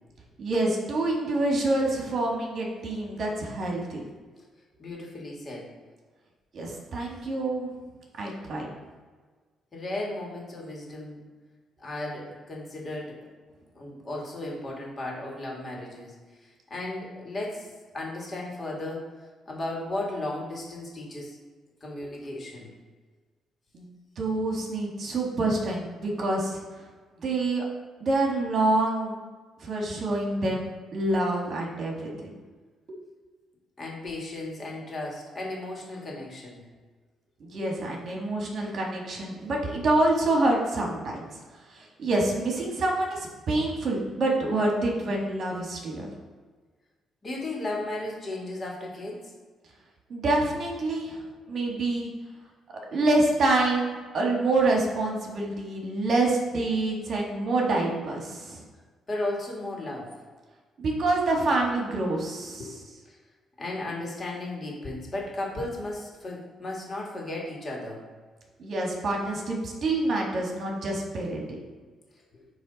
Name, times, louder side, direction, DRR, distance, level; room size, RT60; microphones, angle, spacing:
voice 1, 0.4-4.0 6.5-7.7 8.2-8.7 23.7-23.9 24.2-26.6 27.2-27.6 28.0-29.1 29.6-32.3 32.9-33.0 37.4-41.4 41.7-46.1 50.1-51.2 51.5-52.1 52.9-58.6 60.8-62.7 68.6-71.6, right 2 dB, 55° right, -1 dB, 1.6 m, -27 dB
voice 2, 4.8-5.7 9.7-11.2 11.8-13.2 13.8-16.2 16.4-19.1 19.5-21.4 21.8-22.7 33.8-36.6 47.2-49.3 59.1-60.1 62.6-62.8 63.1-63.2 63.6-68.0, left 2 dB, 35° left, -2 dB, 2.0 m, -35 dB
9.3 x 3.2 x 4.1 m, 1.4 s
cardioid pair, 90°, 0 cm